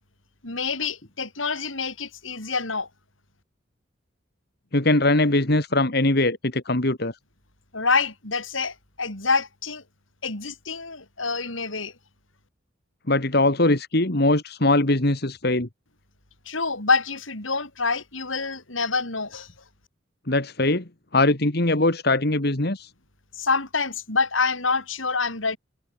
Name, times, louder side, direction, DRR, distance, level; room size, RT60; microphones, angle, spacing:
voice 1, 0.4-2.9 7.7-9.8 10.2-11.9 16.5-19.5 23.4-25.6, left 4 dB, 85° left, 7.2 m, -26 dB
voice 2, 4.7-7.1 13.1-15.7 20.3-20.8 21.1-22.9, left 2 dB, 55° left, 2.4 m, -21 dB
head